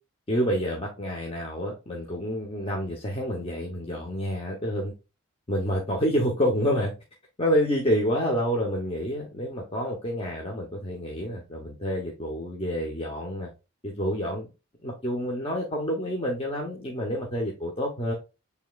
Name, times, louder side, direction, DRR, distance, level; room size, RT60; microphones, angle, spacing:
voice 1, 0.3-4.9 5.5-6.9 7.4-13.5 13.8-14.5 14.8-18.1, equal, 25° left, -1 dB, 0.8 m, -28 dB
6.9 x 3.4 x 2.3 m, 0.29 s
head